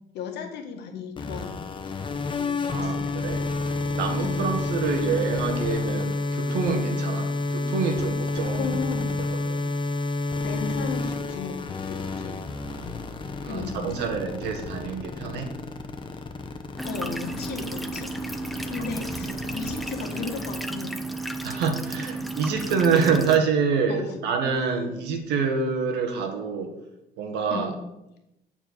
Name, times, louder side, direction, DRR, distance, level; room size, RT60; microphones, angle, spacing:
voice 1, 0.1-1.6 2.3-3.1 4.2-4.4 8.6-9.2 10.4-11.6 11.9-12.3 13.5-13.8 16.8-18.1 18.7-20.9 23.9-24.1 27.5-27.7, left 6 dB, 80° left, 2 dB, 1.7 m, -35 dB
sound 1, 1.2-20.7, left 2 dB, 30° left, 1.0 m, -30 dB
voice 2, 2.7-3.4 4.0-8.8 9.2-9.7 13.4-15.5 18.8-19.4 21.4-26.7 27.2-27.7, right 5 dB, 85° right, 4 dB, 1.6 m, -27 dB
sound 2, 16.8-23.4, right 2 dB, ahead, 0.6 m, -33 dB
8.9 x 4.5 x 6.7 m, 0.90 s
cardioid pair, 110°, 17 cm